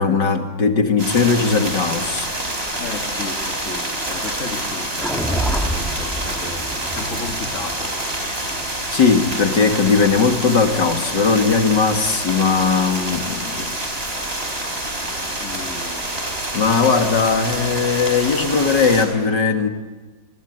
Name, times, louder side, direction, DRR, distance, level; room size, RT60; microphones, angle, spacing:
voice 1, 0.0-2.3 8.2-8.5 8.9-13.6 16.5-19.7, left 5 dB, 65° left, 5 dB, 2.8 m, -18 dB
sound 1, 1.0-19.1, right 1 dB, 30° right, 5.2 m, -27 dB
voice 2, 2.8-8.0 13.6-13.9 15.4-16.1, left 4 dB, 40° left, 4 dB, 2.1 m, -34 dB
sound 2, 5.0-9.3, right 1 dB, ahead, 2.6 m, -27 dB
29.0 x 21.5 x 9.5 m, 1.3 s
omnidirectional pair, 2.1 m